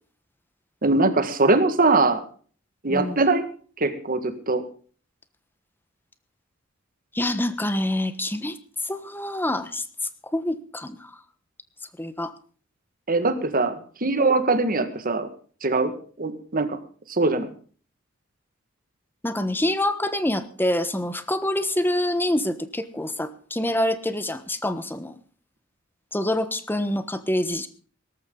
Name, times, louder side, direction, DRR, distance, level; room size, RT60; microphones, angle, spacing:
voice 1, 0.8-2.2 2.8-3.5 3.8-4.6 13.1-15.3 15.6-15.9 16.2-16.8 17.1-17.5, right 3 dB, 45° right, 10 dB, 1.7 m, -22 dB
voice 2, 7.1-8.6 8.8-9.8 10.3-11.1 12.0-12.3 19.2-25.2 26.1-27.7, left 1 dB, 10° left, 11 dB, 1.2 m, -26 dB
18.0 x 14.0 x 3.9 m, 0.42 s
head